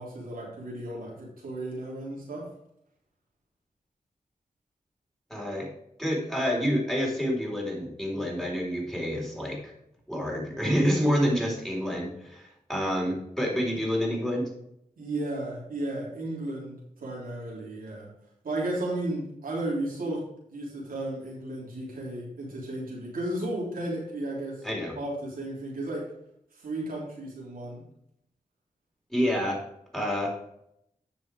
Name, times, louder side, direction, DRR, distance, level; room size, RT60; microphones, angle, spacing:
voice 1, 0.0-2.5 15.0-18.1 18.4-20.2 20.5-24.6 25.0-26.0 26.6-27.8, right 1 dB, 90° right, -4 dB, 3.5 m, -34 dB
voice 2, 5.3-5.7 6.0-9.7 10.1-14.5 24.6-25.0 29.1-29.6 29.9-30.4, equal, 5° left, -2 dB, 4.0 m, -28 dB
9.8 x 5.7 x 4.9 m, 0.75 s
cardioid pair, 55°, 14 cm